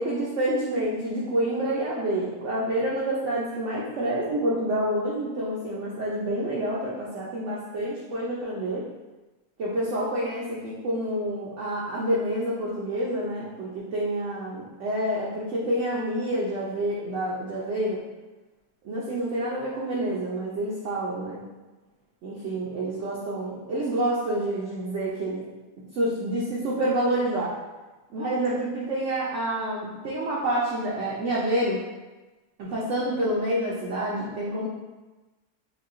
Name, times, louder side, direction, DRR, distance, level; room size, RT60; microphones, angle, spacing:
voice 1, 0.0-8.8 9.6-18.0 18.8-21.4 22.2-25.4 25.9-27.5 28.1-31.8 32.6-34.7, right 1 dB, 60° right, -6 dB, 0.8 m, -28 dB
5.4 x 2.3 x 2.5 m, 1.2 s
omnidirectional pair, 1.7 m